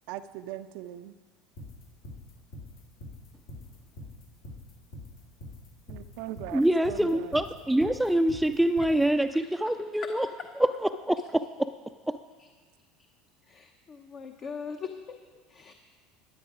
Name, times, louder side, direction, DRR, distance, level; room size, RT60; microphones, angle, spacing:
voice 1, 0.1-1.1 5.9-7.4, right 13 dB, 65° right, 12 dB, 0.4 m, -40 dB
sound 1, 1.6-9.0, left 1 dB, 70° left, 2.7 m, -44 dB
voice 2, 6.5-10.3 10.6-11.5 12.1-12.2, right 1 dB, 5° right, 8 dB, 0.4 m, -25 dB
voice 3, 13.5-15.2 15.5-15.7, left 6 dB, 45° left, 5 dB, 0.8 m, -40 dB
12.5 x 9.1 x 4.9 m, 1.5 s
hypercardioid pair, 75°, 0 cm